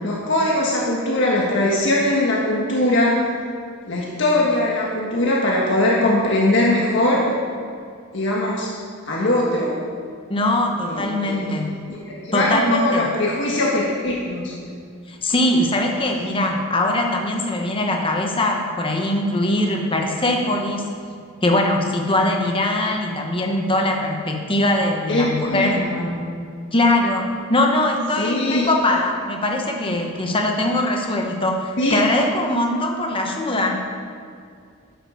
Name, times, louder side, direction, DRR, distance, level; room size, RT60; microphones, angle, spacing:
voice 1, 0.0-3.2 3.9-7.2 8.1-8.8 9.1-9.8 10.8-11.6 11.9-14.5 25.1-26.1 28.2-28.7 29.9-30.1 31.8-32.0, left 1 dB, 60° left, -4 dB, 1.5 m, -21 dB
voice 2, 10.3-11.7 12.3-13.0 15.1-20.9 21.4-25.8 26.7-33.8, left 1 dB, 25° left, 2 dB, 1.3 m, -21 dB
10.5 x 8.1 x 6.5 m, 2.2 s
head